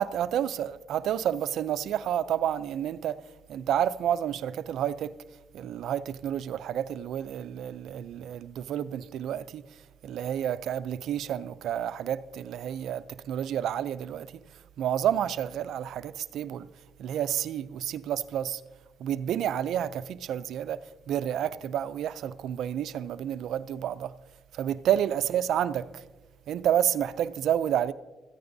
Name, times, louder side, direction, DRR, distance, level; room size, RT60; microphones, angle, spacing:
voice 1, 0.0-3.2 3.5-5.2 5.5-9.6 10.0-14.4 14.8-16.7 17.0-18.6 19.0-20.8 21.1-24.1 24.5-26.0 26.5-27.9, right 10 dB, 75° right, 0.4 m, -30 dB
15.5 x 14.0 x 2.7 m
cardioid pair, 90°, 0 cm